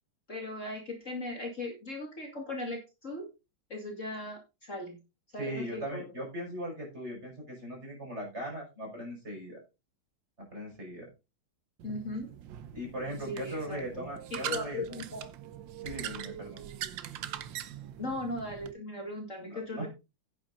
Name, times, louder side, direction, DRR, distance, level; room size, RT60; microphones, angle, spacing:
voice 1, 0.3-3.3 3.7-5.0 5.3-6.0 11.8-12.3 13.2-15.3 18.0-19.9, left 2 dB, 35° left, 1 dB, 2.7 m, -38 dB
voice 2, 5.4-9.6 10.4-11.1 12.7-15.0 15.8-16.6 19.4-19.9, equal, 30° right, 0 dB, 6.5 m, -39 dB
sound 1, 11.8-18.7, right 11 dB, 70° right, 1.5 m, -42 dB
10.0 x 9.0 x 4.0 m, 0.27 s
omnidirectional pair, 2.2 m